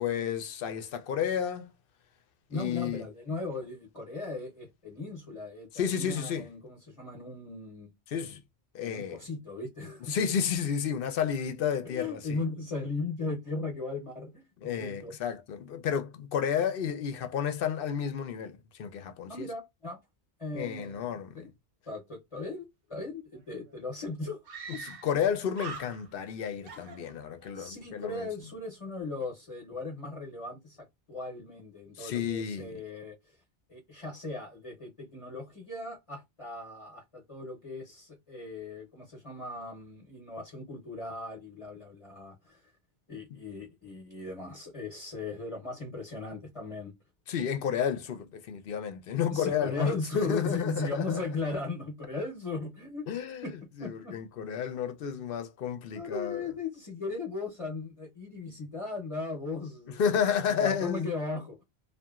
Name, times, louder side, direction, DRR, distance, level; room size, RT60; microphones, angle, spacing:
voice 1, 0.0-1.7 2.5-3.1 5.7-6.5 8.1-8.4 8.7-9.2 10.1-12.4 14.6-18.5 18.8-19.5 20.6-21.4 24.8-28.3 32.0-32.7 47.3-51.2 53.1-53.4 53.8-56.4 60.0-61.1, left 8 dB, 65° left, 0.7 m, -31 dB
voice 2, 2.5-7.9 8.8-10.2 11.8-14.4 14.8-15.2 19.3-20.0 20.4-21.1 21.3-21.5 21.9-24.4 24.7-24.8 26.7-26.8 27.5-33.4 33.7-42.6 43.1-46.9 49.3-53.1 53.4-54.1 55.9-61.6, left 3 dB, 35° left, 0.8 m, -37 dB
Screaming, 23.4-23.5 23.7-23.8 24.5-25.3 25.5-26.3 26.6-27.6, right 4 dB, 65° right, 0.9 m, -43 dB
2.7 x 2.5 x 2.3 m
omnidirectional pair, 1.1 m